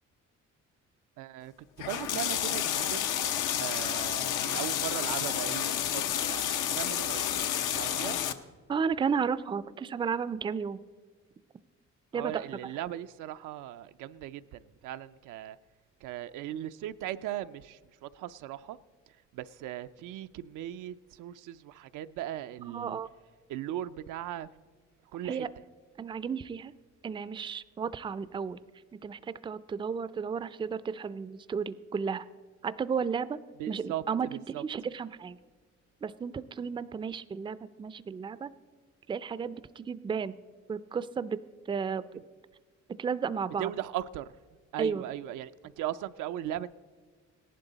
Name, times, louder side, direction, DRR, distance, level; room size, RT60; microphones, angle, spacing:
voice 1, 1.2-1.5 1.8-3.0 3.6-6.5 6.7-7.2 7.7-8.2 12.1-15.6 16.0-18.8 19.3-23.0 23.5-24.5 25.1-25.5 33.6-34.0 34.3-34.6 43.6-44.3 44.7-46.7, right 12 dB, 85° right, 11 dB, 0.5 m, -38 dB
sound 1, 1.8-8.3, left 10 dB, 85° left, 0.7 m, -30 dB
voice 2, 8.7-10.8 12.1-12.7 22.7-23.1 25.2-25.5 26.0-26.7 27.0-28.6 29.0-32.3 32.6-33.4 33.7-35.4 36.0-38.5 39.1-40.3 40.7-41.4 41.7-42.0 43.0-43.7 44.8-45.0, right 6 dB, 15° right, 16 dB, 0.3 m, -33 dB
17.5 x 11.0 x 4.0 m, 1.5 s
cardioid pair, 90°, 30 cm